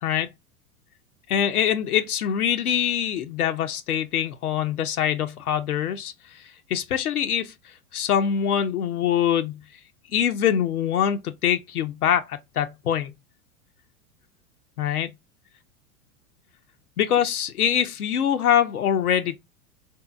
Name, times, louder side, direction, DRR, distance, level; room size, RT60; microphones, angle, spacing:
voice 1, 1.3-7.5 7.9-9.6 10.1-13.1 14.8-15.1 17.0-19.4, left 9 dB, 85° left, 0.6 m, -24 dB
3.4 x 2.7 x 2.3 m
hypercardioid pair, 95°, 43 cm